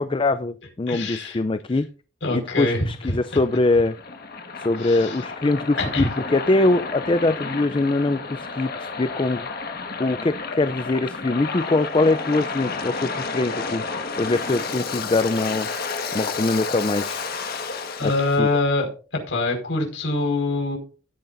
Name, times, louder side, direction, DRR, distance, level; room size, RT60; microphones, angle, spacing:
voice 1, 0.0-1.9 2.3-3.9 4.6-9.5 10.0-13.8 14.2-15.7 16.1-17.3 18.0-18.5, left 2 dB, 25° left, 12 dB, 0.4 m, -23 dB
voice 2, 0.9-1.4 1.7-1.8 2.2-3.4 4.8-5.2 5.8-6.1 18.0-18.9 19.3-20.8, left 2 dB, 85° left, 2 dB, 5.0 m, -24 dB
Waves surf, 2.6-18.4, left 4 dB, 55° left, 1.5 m, -31 dB
16.0 x 9.7 x 2.6 m, 0.35 s
head